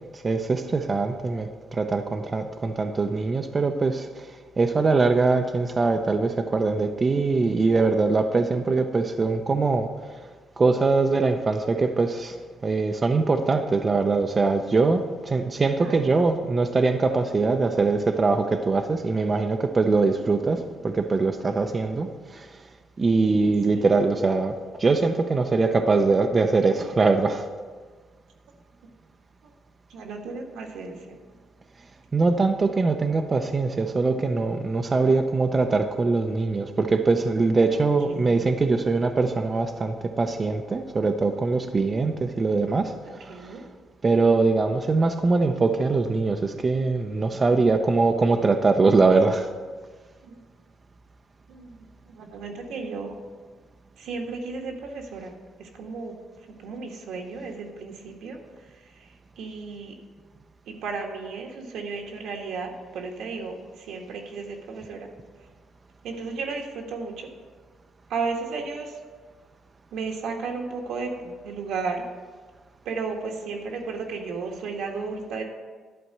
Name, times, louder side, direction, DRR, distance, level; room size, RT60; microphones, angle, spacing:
voice 1, 0.1-10.1 10.6-12.4 12.6-22.6 23.0-27.4 32.1-43.6 44.0-49.5, right 3 dB, 35° right, 5 dB, 0.6 m, -22 dB
voice 2, 15.7-16.1 23.7-23.9 29.4-29.5 29.9-31.2 37.7-38.5 43.0-43.6 50.2-50.3 51.5-53.1 54.0-56.2 56.6-58.4 58.7-60.0 60.7-65.1 66.0-67.3 68.1-69.0 69.9-72.1 72.8-75.4, right 4 dB, 80° right, 1 dB, 1.5 m, -34 dB
11.0 x 4.3 x 7.8 m, 1.5 s
cardioid pair, 90°, 0 cm